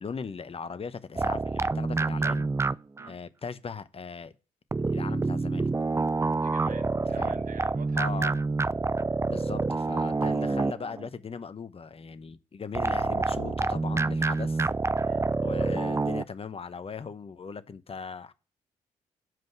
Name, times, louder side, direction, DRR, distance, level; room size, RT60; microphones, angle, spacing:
voice 1, 0.0-2.5 3.1-4.3 4.8-5.7 7.2-7.4 7.9-8.4 9.3-14.7 15.4-18.3, left 5 dB, 35° left, 0.9 m, -38 dB
sound 1, 1.2-3.1 4.7-11.1 12.7-16.2, right 3 dB, 15° right, 0.4 m, -27 dB
voice 2, 6.3-8.3 15.0-15.3, right 6 dB, 55° right, 1.2 m, -47 dB
7.7 x 5.2 x 5.9 m
hypercardioid pair, 40°, 17 cm